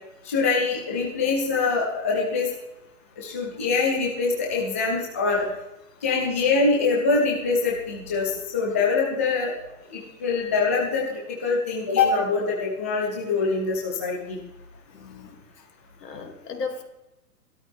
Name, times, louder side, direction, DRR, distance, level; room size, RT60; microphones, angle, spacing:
voice 1, 0.3-2.5 3.2-5.4 6.0-9.5 9.9-14.4, left 4 dB, 10° left, -3 dB, 0.6 m, -24 dB
voice 2, 14.9-15.3 16.0-16.8, left 4 dB, 75° left, 5 dB, 2.9 m, -35 dB
17.0 x 13.0 x 3.6 m, 0.94 s
hypercardioid pair, 170°, 48 cm